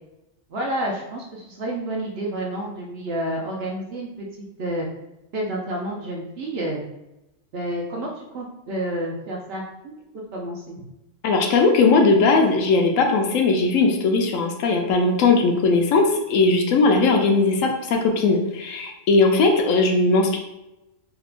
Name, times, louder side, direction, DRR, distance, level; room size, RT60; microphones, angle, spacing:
voice 1, 0.5-4.9 5.3-6.8 7.5-10.8, right 1 dB, 60° right, -2 dB, 0.7 m, -30 dB
voice 2, 11.2-20.4, left 3 dB, 75° left, 3 dB, 0.9 m, -19 dB
3.5 x 2.8 x 2.4 m, 0.94 s
omnidirectional pair, 1.4 m